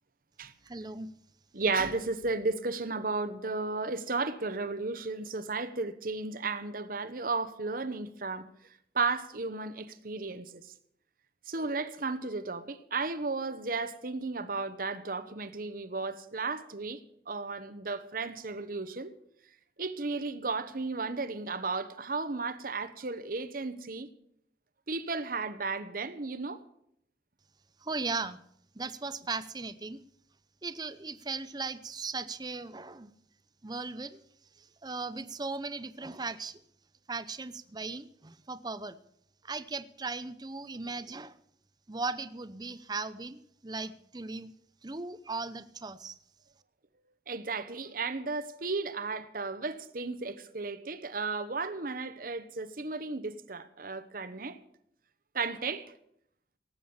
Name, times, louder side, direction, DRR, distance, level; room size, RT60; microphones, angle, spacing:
voice 1, 0.6-1.1 27.8-28.4 28.7-30.0 30.6-33.1 33.6-34.2 34.6-36.6 37.1-39.0 39.4-41.4 41.9-44.5 44.8-46.2, right 3 dB, 25° right, 0.7 m, -37 dB
voice 2, 1.5-8.5 8.9-10.6 11.5-19.1 19.8-24.1 24.9-26.6 47.3-54.6 55.3-55.9, right 3 dB, 50° right, 1.0 m, -34 dB
18.0 x 8.5 x 7.1 m
head